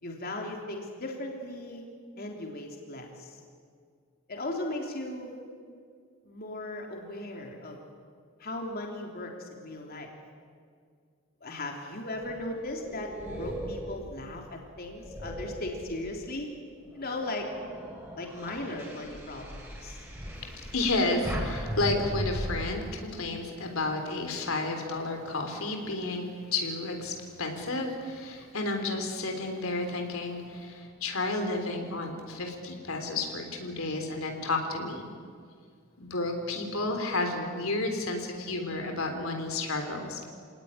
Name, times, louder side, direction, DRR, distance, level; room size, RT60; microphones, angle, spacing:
voice 1, 0.0-1.8 2.2-3.4 4.3-5.4 6.2-7.8 8.4-10.1 11.4-13.1 13.4-16.5 16.9-17.5 18.2-20.0, left 2 dB, 45° left, 1 dB, 3.5 m, -37 dB
sound 1, 12.2-16.4 16.9-22.6, equal, 10° right, 5.7 m, -38 dB
voice 2, 20.4-35.1 36.0-40.3, left 2 dB, 80° left, 4 dB, 3.6 m, -31 dB
28.0 x 19.0 x 10.0 m, 2.1 s
head